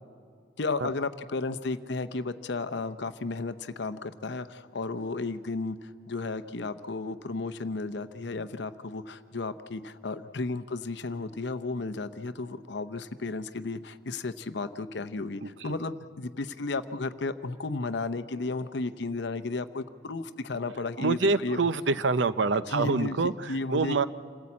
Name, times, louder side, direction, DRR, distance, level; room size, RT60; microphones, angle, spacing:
voice 1, 0.6-21.7 22.6-24.0, left 3 dB, 65° left, 12 dB, 0.7 m, -33 dB
voice 2, 21.0-23.3 23.7-24.1, right 4 dB, 75° right, 14 dB, 0.6 m, -25 dB
27.5 x 15.0 x 8.5 m, 2.2 s
head